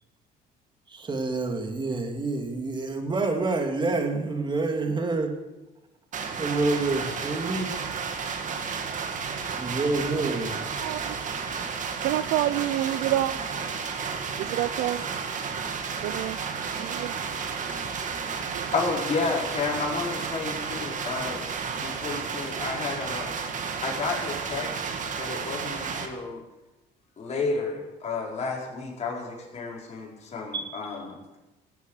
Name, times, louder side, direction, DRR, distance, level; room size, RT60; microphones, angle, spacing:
voice 1, 0.9-5.4 6.4-7.8 9.5-10.6 30.5-30.8, right 3 dB, 25° right, 2.5 m, -28 dB
sound 1, 6.1-26.1, right 5 dB, 50° right, 1.9 m, -32 dB
voice 2, 10.8-11.4 12.0-13.4 14.4-15.0 16.0-16.4 16.8-17.1 18.5-18.7, right 14 dB, 85° right, 0.5 m, -28 dB
voice 3, 18.3-21.5 21.8-23.3 23.8-24.7 25.2-26.4 27.2-31.2, left 4 dB, 40° left, 4.9 m, -31 dB
17.0 x 8.2 x 8.2 m
cardioid pair, 110°, 17 cm